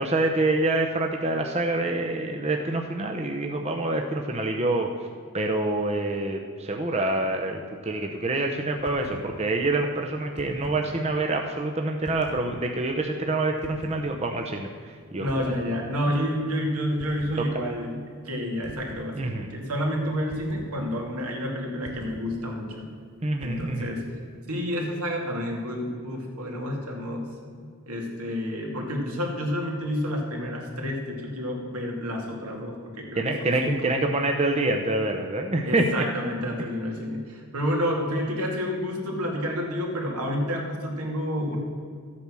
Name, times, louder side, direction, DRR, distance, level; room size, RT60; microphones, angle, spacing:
voice 1, 0.0-4.9 5.3-14.7 15.1-15.3 19.2-19.5 23.2-23.9 27.6-27.7 33.1-36.0, right 2 dB, 30° right, 2 dB, 0.7 m, -26 dB
sound 1, 8.8-9.3 10.2-10.9 12.0-12.5 13.6-14.0 15.3-15.7 17.0-17.4 18.6-19.1 20.3-20.7 21.8-22.2 23.4-23.8, equal, 90° left, 2.8 m, -42 dB
voice 2, 15.2-18.0 18.2-22.9 23.4-24.2 24.5-27.3 27.9-34.0 35.6-41.6, equal, 85° right, 0 dB, 2.6 m, -29 dB
13.0 x 8.7 x 6.2 m, 2.2 s
head